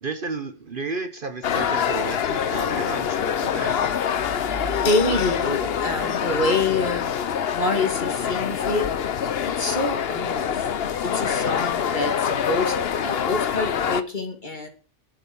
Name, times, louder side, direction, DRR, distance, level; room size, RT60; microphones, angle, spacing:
voice 1, 0.0-3.9, right 3 dB, 45° right, 9 dB, 1.2 m, -32 dB
sound 1, 1.4-14.0, left 8 dB, 55° left, 1.0 m, -25 dB
sound 2, 4.1-6.9, equal, 75° right, 3.7 m, -40 dB
voice 2, 4.8-7.1 7.5-8.9 9.4-10.6 11.0-12.8 13.0-14.7, left 2 dB, 40° left, 5 dB, 2.5 m, -26 dB
11.5 x 7.5 x 7.1 m, 0.37 s
omnidirectional pair, 1.3 m